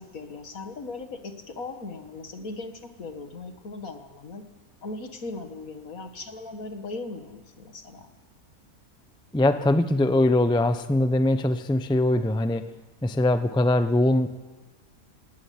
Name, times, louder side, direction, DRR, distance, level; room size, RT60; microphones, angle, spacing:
voice 1, 0.0-4.4 4.8-8.1, left 3 dB, 65° left, 7 dB, 2.2 m, -38 dB
voice 2, 9.3-12.7 13.0-14.3, left 1 dB, 5° left, 10 dB, 0.6 m, -22 dB
18.5 x 18.0 x 9.5 m, 1.2 s
omnidirectional pair, 1.6 m